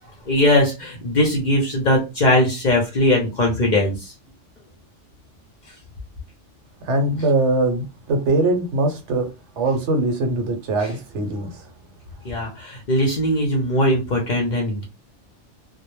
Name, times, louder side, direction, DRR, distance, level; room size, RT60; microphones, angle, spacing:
voice 1, 0.3-4.1 12.2-14.8, left 1 dB, 50° left, 0.6 m, -20 dB
voice 2, 6.8-9.3 9.6-11.6, right 2 dB, 70° right, 0.9 m, -21 dB
2.1 x 2.1 x 3.0 m
omnidirectional pair, 1.2 m